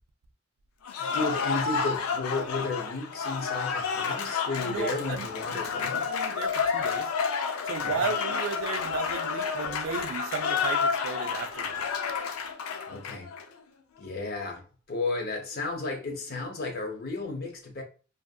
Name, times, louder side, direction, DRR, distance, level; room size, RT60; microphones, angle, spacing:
Cheering / Applause, 0.8-13.4, left 6 dB, 85° left, 0.4 m, -30 dB
voice 1, 1.0-6.1 7.8-8.1 12.9-13.3 14.0-17.8, left 3 dB, 45° left, 0.6 m, -33 dB
voice 2, 4.6-7.1 7.6-11.8, right 6 dB, 65° right, 0.3 m, -35 dB
2.6 x 2.4 x 2.3 m
head